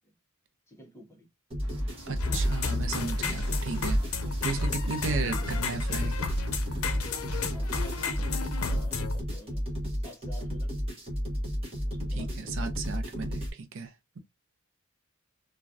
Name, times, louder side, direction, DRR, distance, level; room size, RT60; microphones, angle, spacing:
voice 1, 0.7-1.3 4.0-4.2 5.1-5.5 7.5-10.7 11.8-12.5, left 1 dB, 10° left, 1.0 m, -49 dB
sound 1, 1.5-13.5, equal, 30° right, 1.0 m, -33 dB
sound 2, 1.6-8.3, right 1 dB, 75° right, 1.0 m, -46 dB
voice 2, 2.1-4.0 4.4-6.1 12.1-14.2, right 4 dB, 60° right, 0.5 m, -35 dB
sound 3, 2.2-9.2, left 3 dB, 75° left, 0.6 m, -32 dB
3.1 x 2.3 x 2.4 m
head